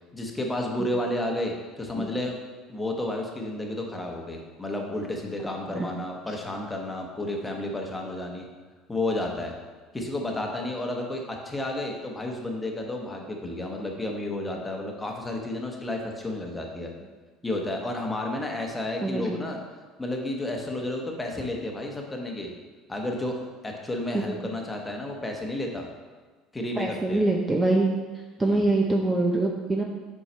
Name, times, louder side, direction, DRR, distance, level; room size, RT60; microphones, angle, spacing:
voice 1, 0.1-2.4 2.7-8.4 8.9-9.5 9.9-16.9 17.4-19.6 20.0-22.5 22.9-23.4 23.6-25.9 26.5-27.2 28.4-28.7, left 1 dB, 15° left, 1 dB, 1.1 m, -31 dB
voice 2, 19.0-19.4 26.8-27.9 28.4-29.8, right 2 dB, 15° right, 0 dB, 0.6 m, -24 dB
5.4 x 4.8 x 4.4 m, 1.4 s
supercardioid pair, 110°, 0 cm